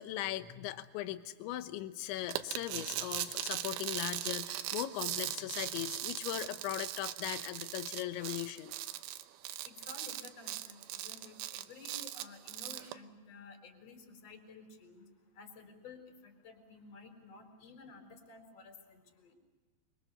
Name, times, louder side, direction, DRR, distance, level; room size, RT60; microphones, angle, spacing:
voice 1, 0.0-8.7, left 13 dB, 80° left, 10 dB, 3.3 m, -39 dB
sound 1, 2.3-12.9, right 14 dB, 85° right, 3.4 m, -39 dB
voice 2, 9.6-15.1 15.3-19.3, left 4 dB, 35° left, 4 dB, 4.9 m, -53 dB
26.5 x 24.5 x 6.8 m, 1.3 s
omnidirectional pair, 5.5 m